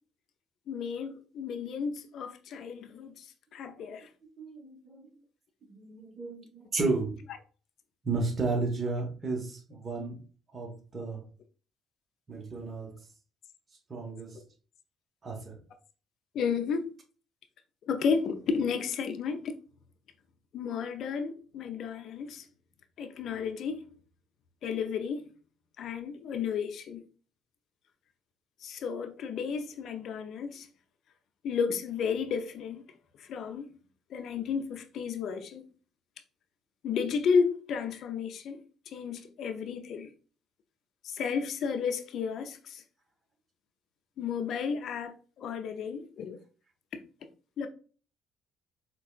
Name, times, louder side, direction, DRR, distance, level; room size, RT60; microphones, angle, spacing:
voice 1, 0.7-3.3 3.5-4.1 16.3-16.9 17.9-19.5 20.5-22.5 23.0-23.9 24.6-25.3 25.8-27.0 28.6-30.7 31.4-32.8 33.2-33.8 34.1-35.7 36.8-40.1 41.0-42.8 44.2-46.4 47.6-47.7, left 6 dB, 65° left, 0.5 m, -32 dB
voice 2, 4.4-5.1 5.7-7.2 8.0-10.2 10.5-11.2 12.3-13.0 13.9-14.4 15.2-15.6, right 3 dB, 40° right, 1.1 m, -33 dB
4.5 x 2.3 x 2.4 m
supercardioid pair, 70°, 0 cm